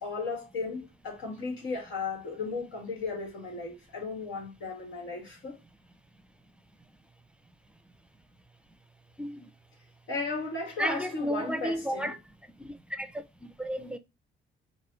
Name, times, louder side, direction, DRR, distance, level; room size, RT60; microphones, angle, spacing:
voice 1, 0.0-5.6 10.1-12.1, left 3 dB, 80° left, 2.1 m, -35 dB
voice 2, 9.2-9.5 10.8-12.2 12.6-13.1 13.6-14.0, equal, 5° right, 0.5 m, -32 dB
4.7 x 2.7 x 3.0 m
cardioid pair, 90°, 20 cm